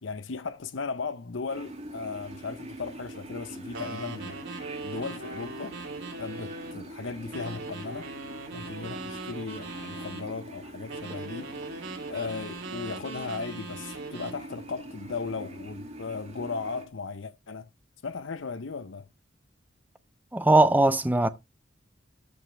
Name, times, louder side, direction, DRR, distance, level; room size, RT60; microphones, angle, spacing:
voice 1, 0.0-4.4 4.8-5.8 6.2-8.1 8.5-11.5 12.1-17.7 18.0-19.1, left 4 dB, 70° left, 0.7 m, -36 dB
sound 1, 1.5-16.9, right 1 dB, 35° right, 2.4 m, -43 dB
sound 2, 3.7-6.8 7.3-10.3 10.9-14.4, right 3 dB, 80° right, 3.1 m, -40 dB
voice 2, 20.3-21.3, right 2 dB, 10° right, 0.5 m, -20 dB
13.5 x 5.1 x 3.4 m
head